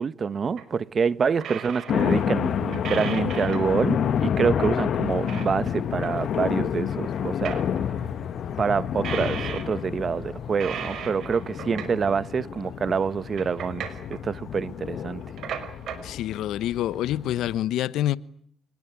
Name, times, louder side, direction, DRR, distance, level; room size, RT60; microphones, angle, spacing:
voice 1, 0.0-7.6 8.6-15.2, right 6 dB, 45° right, 1.3 m, -26 dB
sound 1, 0.6-0.7 1.4-2.3 2.7-3.7 4.0-4.1 4.4-4.5 4.9-5.7 6.0-6.1 6.3-6.4 6.7-7.9 9.0-9.9 10.5-12.1 12.6-12.7 13.0-14.2 15.2-16.1 16.6-16.7 16.9-17.0, right 8 dB, 70° right, 5.4 m, -37 dB
sound 2, 1.9-17.6, left 8 dB, 65° left, 1.7 m, -29 dB
sound 3, 3.9-11.5, left 7 dB, 50° left, 1.1 m, -36 dB
voice 2, 16.0-18.2, left 13 dB, 85° left, 1.1 m, -27 dB
28.5 x 20.5 x 9.6 m
cardioid pair, 90°, 0 cm